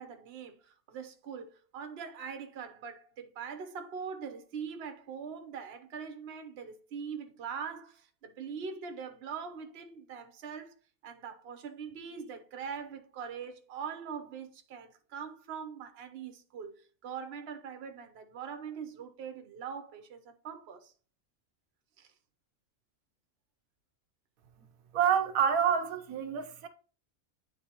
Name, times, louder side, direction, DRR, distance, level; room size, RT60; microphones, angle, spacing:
voice 1, 0.0-10.7 11.0-20.9 22.0-22.1, right 6 dB, 50° right, 0.9 m, -42 dB
voice 2, 24.9-26.7, right 8 dB, 80° right, 1.1 m, -27 dB
9.6 x 3.9 x 2.9 m
omnidirectional pair, 1.5 m